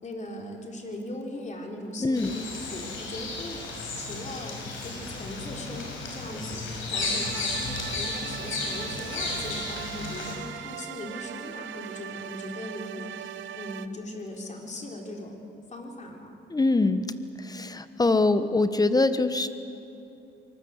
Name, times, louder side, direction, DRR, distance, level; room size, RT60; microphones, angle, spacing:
voice 1, 0.0-15.4 15.7-16.4, left 1 dB, 35° left, 2 dB, 4.0 m, -39 dB
voice 2, 2.0-2.3 16.5-17.0 17.4-19.5, left 3 dB, 20° left, 11 dB, 1.2 m, -23 dB
Bird vocalization bird call bird song, 2.1-10.3, left 3 dB, 80° left, 5.9 m, -34 dB
sound 1, 6.9-13.9, right 11 dB, 70° right, 0.9 m, -40 dB
24.5 x 20.0 x 8.2 m, 2.7 s
cardioid pair, 90°, 20 cm